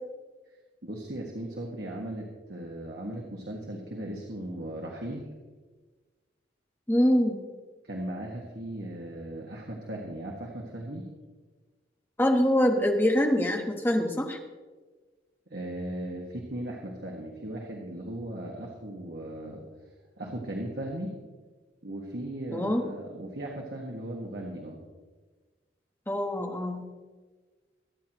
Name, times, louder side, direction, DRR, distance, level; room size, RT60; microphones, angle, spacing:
voice 1, 0.8-5.3 7.8-11.1 15.5-19.6 20.2-21.1 21.8-24.8, right 1 dB, 65° right, -1 dB, 1.7 m, -37 dB
voice 2, 6.9-7.4 12.2-14.4 22.5-22.8 26.1-26.9, equal, 10° left, 3 dB, 1.1 m, -24 dB
23.5 x 9.5 x 3.0 m, 1.4 s
head